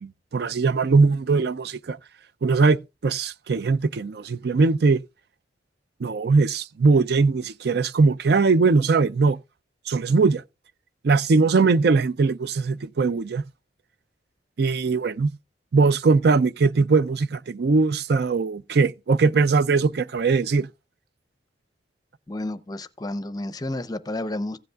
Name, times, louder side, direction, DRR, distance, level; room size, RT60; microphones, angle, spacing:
voice 1, 0.0-2.0 2.4-5.0 6.0-9.4 9.9-10.4 11.0-13.4 14.6-15.3 15.7-20.7, right 4 dB, 60° right, 0.4 m, -20 dB
voice 2, 22.3-24.6, left 1 dB, 20° left, 0.6 m, -31 dB
15.5 x 8.0 x 2.3 m
head